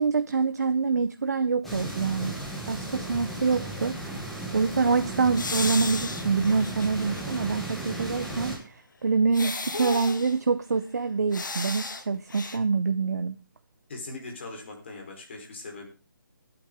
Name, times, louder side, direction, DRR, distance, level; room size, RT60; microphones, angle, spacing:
voice 1, 0.0-2.4 2.7-4.3 4.5-13.3, right 4 dB, 50° right, 10 dB, 0.8 m, -26 dB
sound 1, 1.6-8.6, right 1 dB, ahead, 1.2 m, -35 dB
sound 2, 5.3-7.4 7.7-7.8 9.3-10.4 11.3-12.0 12.3-12.6, left 3 dB, 65° left, 2.1 m, -34 dB
voice 2, 13.9-15.9, left 3 dB, 35° left, 2 dB, 4.1 m, -40 dB
23.0 x 8.9 x 3.7 m, 0.31 s
hypercardioid pair, 180°, 11 cm